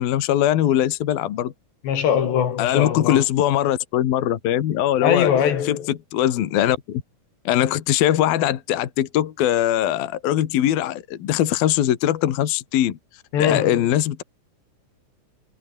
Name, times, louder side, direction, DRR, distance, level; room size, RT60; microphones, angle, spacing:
voice 1, 0.0-1.5 2.6-5.3 5.6-7.0 7.4-13.0 13.4-14.2, left 12 dB, 65° left, 3.4 m, -21 dB
voice 2, 1.8-3.2 5.0-5.9 13.3-13.8, left 8 dB, 90° left, 5.3 m, -21 dB
omnidirectional pair, 4.8 m